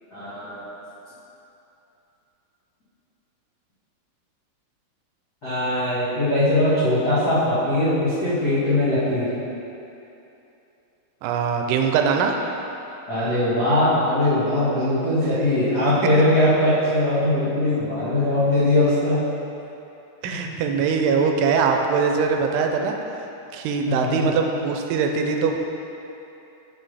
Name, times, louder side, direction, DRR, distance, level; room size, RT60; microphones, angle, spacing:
voice 1, 0.1-0.6 5.4-9.3 13.1-19.2 20.2-20.5 23.9-24.3, left 1 dB, 75° left, -14 dB, 0.9 m, -21 dB
voice 2, 11.2-12.4 20.2-22.9 23.5-25.7, right 5 dB, 85° right, 3 dB, 2.5 m, -22 dB
7.5 x 6.1 x 3.3 m, 2.9 s
omnidirectional pair, 4.7 m